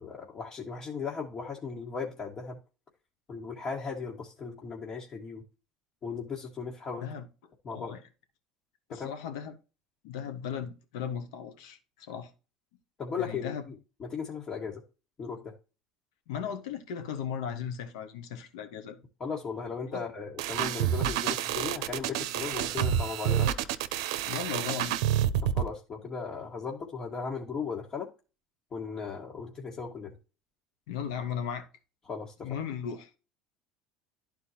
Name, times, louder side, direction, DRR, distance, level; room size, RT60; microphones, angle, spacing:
voice 1, 0.0-2.6 3.3-5.4 6.0-7.1 7.7-7.9 8.9-9.1 13.0-13.5 14.0-14.8 15.2-15.4 19.2-23.5 25.6-28.1 28.7-30.1 32.1-32.5, left 5 dB, 35° left, 1.8 m, -37 dB
voice 2, 7.7-8.0 8.9-9.6 10.0-12.3 13.2-13.6 16.3-19.0 19.9-20.0 24.2-25.0 30.9-31.7 32.4-33.1, left 8 dB, 80° left, 1.3 m, -36 dB
sound 1, 20.4-25.7, right 11 dB, 80° right, 0.6 m, -28 dB
11.5 x 4.5 x 2.9 m
hypercardioid pair, 85°, 3 cm